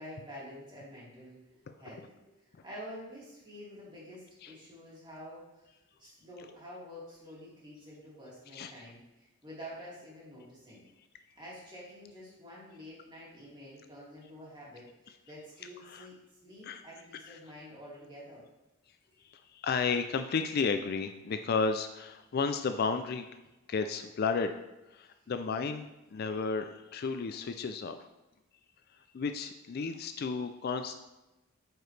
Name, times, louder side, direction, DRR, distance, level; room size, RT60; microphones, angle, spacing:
voice 1, 0.0-1.4 1.8-2.3 2.6-5.6 6.0-9.0 9.4-10.8 11.4-16.2 16.4-18.4, equal, 25° right, -7 dB, 2.5 m, -48 dB
voice 2, 8.5-8.8 15.8-16.1 16.6-16.8 17.2-17.4 19.3-23.3 23.7-24.5 24.9-28.0 29.1-30.9, left 5 dB, 50° left, 8 dB, 0.4 m, -33 dB
9.0 x 4.8 x 3.3 m, 1.0 s
head